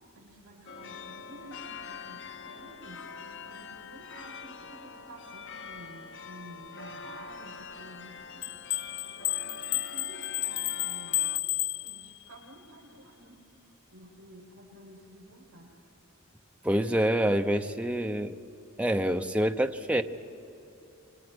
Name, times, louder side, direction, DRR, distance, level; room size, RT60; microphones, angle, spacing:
voice 1, 0.1-8.5 8.9-11.3 11.8-13.4 13.9-15.8, right 1 dB, 80° right, -2 dB, 7.8 m, -51 dB
sound 1, 0.7-11.4, left 5 dB, 55° left, 1.0 m, -45 dB
sound 2, 8.4-12.4, left 17 dB, 85° left, 0.7 m, -32 dB
voice 2, 16.6-18.3 18.8-20.0, right 1 dB, 5° right, 6 dB, 0.8 m, -26 dB
28.5 x 24.5 x 6.3 m, 2.8 s
head